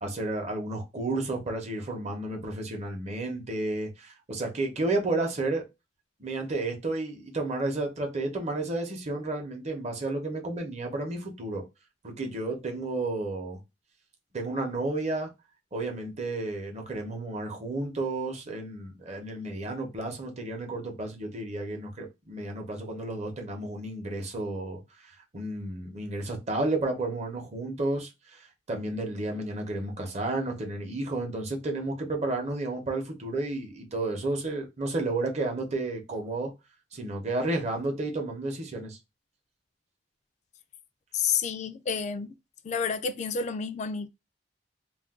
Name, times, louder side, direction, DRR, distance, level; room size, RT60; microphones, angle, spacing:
voice 1, 0.0-5.6 6.2-11.6 12.0-13.6 14.3-15.3 15.7-36.5 36.9-39.0, right 2 dB, 40° right, 0.8 m, -32 dB
voice 2, 41.1-42.3 42.6-44.1, left 6 dB, 40° left, 0.3 m, -30 dB
2.5 x 2.2 x 3.5 m
head